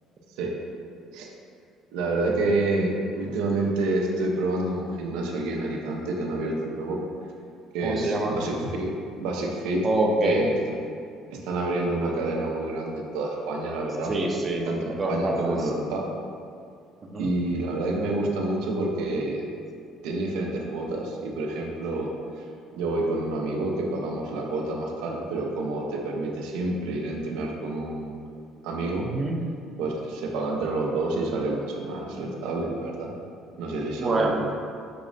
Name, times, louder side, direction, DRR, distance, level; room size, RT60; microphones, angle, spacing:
voice 1, 1.9-7.0 7.7-9.9 10.2-10.8 11.3-14.1 14.7-16.1 17.1-19.5 20.0-28.2 28.6-29.1 29.8-33.1 33.6-34.5, right 2 dB, 90° right, 0 dB, 0.4 m, -28 dB
voice 2, 7.8-8.4 9.8-10.4 14.1-15.7 17.0-17.3 29.0-29.4 34.0-34.4, right 2 dB, 25° right, 0 dB, 0.4 m, -26 dB
6.0 x 2.0 x 2.5 m, 2.3 s
cardioid pair, 140°, 0 cm